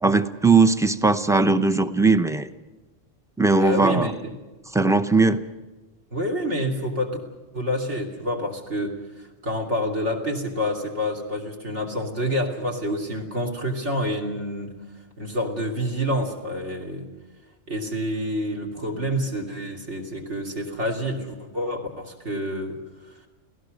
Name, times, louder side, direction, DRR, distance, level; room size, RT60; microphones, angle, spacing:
voice 1, 0.0-2.5 3.4-4.1 4.7-5.4, right 3 dB, 5° right, 9 dB, 0.5 m, -19 dB
voice 2, 3.5-4.1 6.1-7.2 7.5-14.8 15.2-17.1 17.7-22.8, equal, 60° right, 5 dB, 3.2 m, -28 dB
30.0 x 17.5 x 6.4 m, 1.2 s
omnidirectional pair, 1.3 m